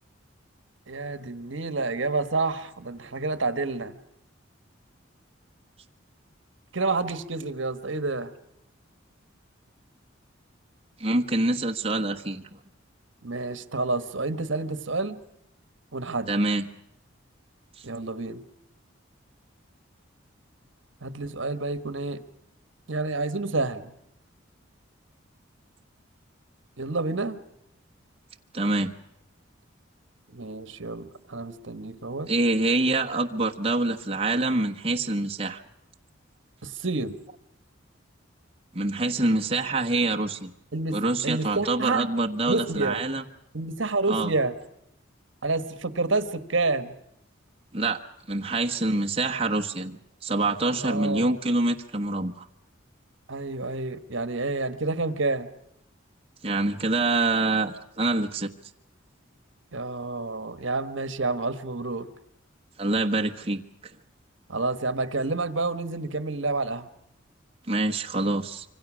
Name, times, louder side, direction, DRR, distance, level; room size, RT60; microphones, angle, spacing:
voice 1, 0.9-4.0 6.7-8.3 13.2-15.2 15.9-16.4 17.8-18.4 21.0-22.2 22.9-23.9 26.8-27.4 30.3-32.3 36.6-37.2 40.7-42.1 42.5-43.0 43.5-44.5 45.4-46.9 50.8-51.4 53.3-55.5 59.7-62.1 64.5-66.9, right 3 dB, 70° right, 11 dB, 1.4 m, -29 dB
voice 2, 11.0-12.4 16.3-16.7 17.8-17.9 28.5-28.9 32.3-35.6 38.7-40.5 40.9-43.2 44.1-44.3 47.7-48.0 48.3-52.5 56.4-58.5 62.8-63.6 67.7-68.6, right 2 dB, 30° right, 2 dB, 1.3 m, -25 dB
26.5 x 25.0 x 6.3 m, 0.79 s
head